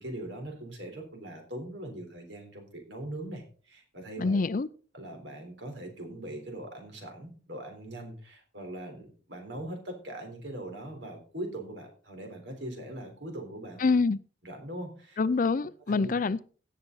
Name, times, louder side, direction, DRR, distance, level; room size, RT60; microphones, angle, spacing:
voice 1, 0.0-4.4 4.9-14.0 14.4-15.2 15.9-16.1, right 1 dB, 75° right, 3.9 m, -41 dB
voice 2, 4.2-4.7 13.8-14.2 15.2-16.4, left 4 dB, 45° left, 0.4 m, -26 dB
17.0 x 6.7 x 4.0 m
head